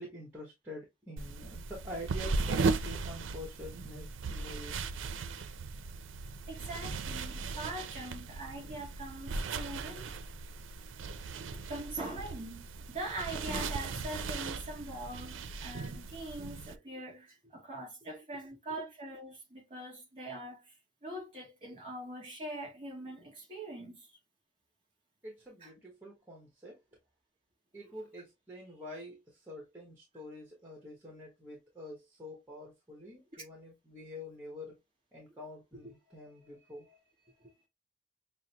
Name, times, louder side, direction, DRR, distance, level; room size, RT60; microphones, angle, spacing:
voice 1, 0.0-4.8 25.2-26.8 27.7-34.7 35.1-37.0 37.4-37.5, left 1 dB, 10° right, 1.0 m, -46 dB
sound 1, 1.2-16.8, right 4 dB, 75° right, 0.4 m, -37 dB
voice 2, 6.5-10.2 11.1-11.3 11.7-20.7 21.0-24.0 25.6-25.7, right 1 dB, 30° right, 2.4 m, -42 dB
6.1 x 2.1 x 2.8 m
head